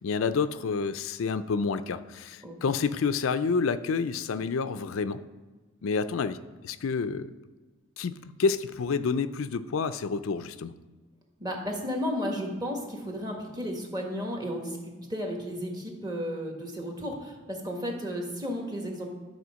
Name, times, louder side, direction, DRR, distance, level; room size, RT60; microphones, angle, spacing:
voice 1, 0.0-5.2 5.8-6.4 6.6-7.3 8.0-10.7, left 5 dB, 75° left, 12 dB, 0.4 m, -29 dB
voice 2, 2.4-2.7 11.4-14.8 15.1-19.1, equal, 20° right, 1 dB, 1.4 m, -33 dB
11.0 x 4.3 x 6.2 m, 1.3 s
head